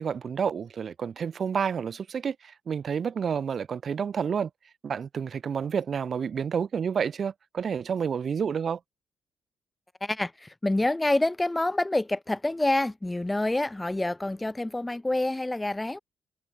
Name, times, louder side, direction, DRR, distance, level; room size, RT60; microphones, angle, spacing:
voice 1, 0.0-4.5 4.8-8.8, right 7 dB, 50° right, 0.5 m, -29 dB
voice 2, 10.0-16.0, left 2 dB, 10° left, 0.3 m, -27 dB
cardioid pair, 90°, 0 cm